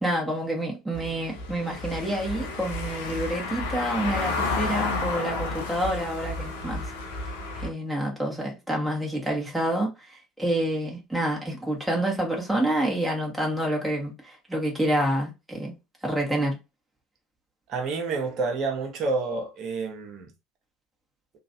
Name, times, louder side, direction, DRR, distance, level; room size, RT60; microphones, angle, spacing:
voice 1, 0.0-6.9 7.5-15.7 16.0-16.6, right 1 dB, 5° right, 1.3 m, -28 dB
Car passing by / Engine, 0.9-7.7, left 3 dB, 75° left, 0.7 m, -31 dB
voice 2, 17.7-20.3, right 3 dB, 50° right, 1.0 m, -29 dB
3.0 x 2.5 x 2.7 m
hypercardioid pair, 70°, 0 cm